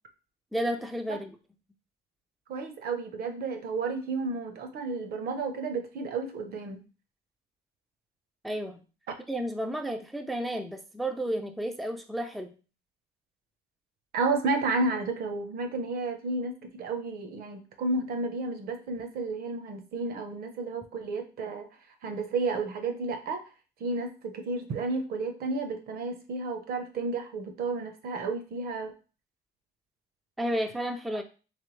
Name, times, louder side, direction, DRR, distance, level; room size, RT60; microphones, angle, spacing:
voice 1, 0.5-1.4 8.4-8.8 9.3-12.5 30.4-31.2, right 1 dB, ahead, 6 dB, 0.4 m, -32 dB
voice 2, 2.5-6.8 14.1-21.7 22.0-23.4 23.8-28.9, right 3 dB, 65° right, 6 dB, 0.9 m, -32 dB
3.3 x 3.3 x 3.2 m, 0.34 s
cardioid pair, 110°, 17 cm